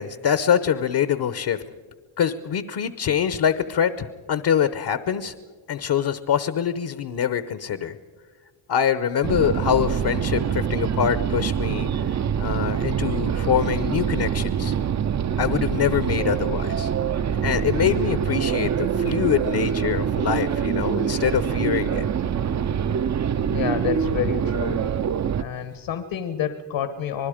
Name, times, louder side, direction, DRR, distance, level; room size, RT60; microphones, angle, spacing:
voice 1, 0.0-1.6 2.2-5.3 5.7-8.0 8.7-14.7 15.4-16.9 17.4-22.1, left 8 dB, 55° left, 13 dB, 1.0 m, -24 dB
sound 1, 9.2-25.4, right 8 dB, 35° right, 0.6 m, -25 dB
voice 2, 23.5-24.8 25.4-27.3, left 8 dB, 70° left, 10 dB, 1.4 m, -28 dB
26.0 x 19.5 x 5.1 m, 1.5 s
cardioid pair, 90°, 47 cm